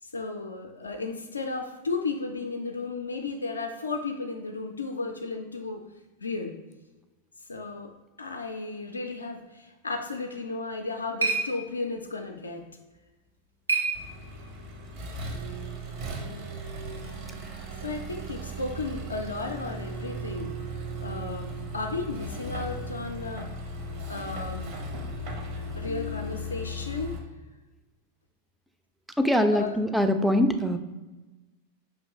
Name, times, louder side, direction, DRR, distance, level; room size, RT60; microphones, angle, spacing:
voice 1, 0.0-5.9 6.2-6.6 7.4-7.9 8.2-12.6 17.8-20.6 21.0-23.5 24.1-24.7 25.7-27.2 29.5-29.8, left 3 dB, 75° left, 4 dB, 0.3 m, -34 dB
sound 1, 10.4-14.7, right 4 dB, 85° right, 0.7 m, -33 dB
Accelerating revving vroom, 13.9-27.2, right 1 dB, 45° right, 0.7 m, -37 dB
voice 2, 29.2-30.8, left 1 dB, 5° right, 7 dB, 0.3 m, -23 dB
5.2 x 2.9 x 2.6 m, 1.1 s
figure-of-eight pair, 90°, 0 cm